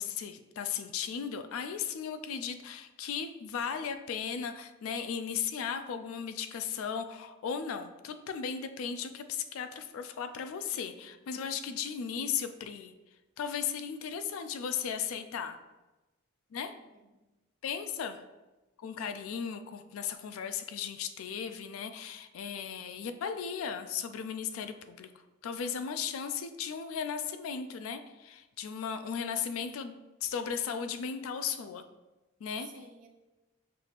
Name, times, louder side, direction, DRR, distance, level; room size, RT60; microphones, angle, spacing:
voice 1, 0.0-12.9 13.4-15.6 16.5-16.7 17.6-18.2 18.8-25.1 25.4-31.8 32.4-32.7, left 7 dB, 80° left, 9 dB, 0.3 m, -36 dB
voice 2, 10.7-11.4 16.7-17.2 22.5-22.8 32.6-33.1, right 4 dB, 40° right, 4 dB, 0.4 m, -55 dB
5.8 x 2.4 x 3.2 m, 1.1 s
head